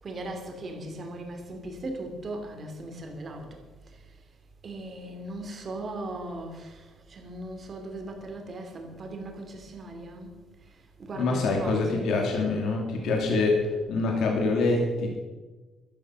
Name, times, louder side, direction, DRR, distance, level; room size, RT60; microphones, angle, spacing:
voice 1, 0.0-3.6 3.9-4.2 4.6-10.3 10.6-12.1, right 2 dB, 35° right, 2.9 m, -38 dB
voice 2, 11.2-13.6 13.9-15.2, left 3 dB, 70° left, 2.8 m, -25 dB
12.5 x 12.0 x 6.4 m
cardioid pair, 140°, 0 cm